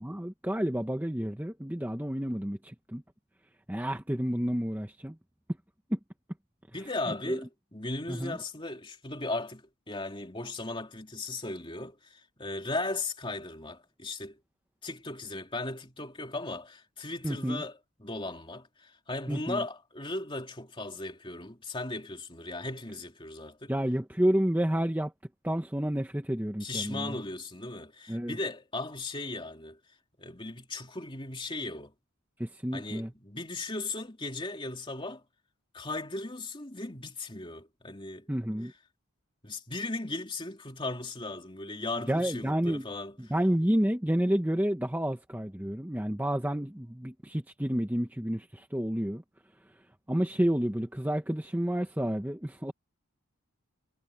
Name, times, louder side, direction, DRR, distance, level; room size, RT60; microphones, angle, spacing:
voice 1, 0.0-3.0 3.7-5.2 5.9-6.0 7.3-7.4 8.1-8.4 17.2-17.6 19.3-19.6 23.7-25.1 25.4-27.2 28.1-28.4 32.4-33.1 38.3-38.7 42.1-42.9 43.2-49.2 50.1-52.7, equal, 10° right, 0.9 m, -30 dB
voice 2, 6.7-14.4 14.8-23.7 26.6-29.8 30.2-31.9 32.7-35.2 35.7-38.3 39.4-43.2, left 2 dB, 25° left, 3.0 m, -37 dB
head